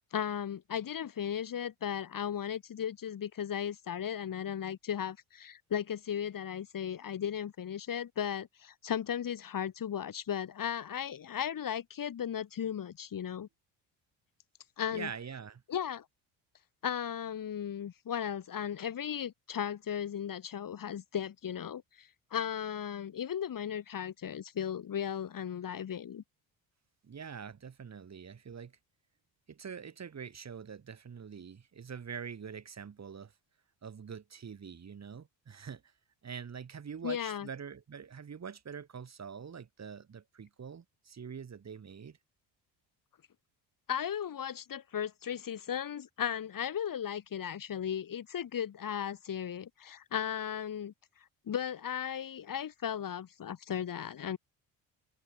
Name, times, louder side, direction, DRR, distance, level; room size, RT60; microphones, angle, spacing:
voice 1, 0.1-13.5 14.8-15.1 15.7-16.0 16.8-26.2 37.0-37.5 43.9-50.9 51.5-54.4, left 9 dB, 50° left, 4.5 m, -36 dB
voice 2, 14.9-15.6 27.0-28.7 29.5-33.3 33.8-35.9 36.2-42.2, right 6 dB, 40° right, 3.9 m, -44 dB
supercardioid pair, 75°, 41 cm